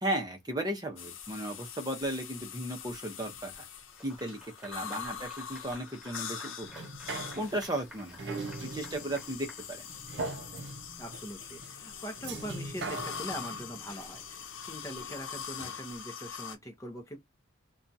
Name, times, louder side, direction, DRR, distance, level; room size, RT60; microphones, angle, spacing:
voice 1, 0.0-3.6 4.0-6.9 7.4-8.3 8.6-9.8, right 1 dB, 20° right, 0.7 m, -35 dB
sound 1, 1.0-16.6, left 7 dB, 80° left, 0.8 m, -43 dB
Clapping / Applause, 4.0-10.3, left 1 dB, 5° right, 1.2 m, -52 dB
voice 2, 4.8-5.2 11.0-17.2, equal, 15° left, 0.7 m, -42 dB
sound 2, 6.6-15.2 15.6-15.7, right 3 dB, 60° right, 0.5 m, -41 dB
2.8 x 2.3 x 2.6 m
head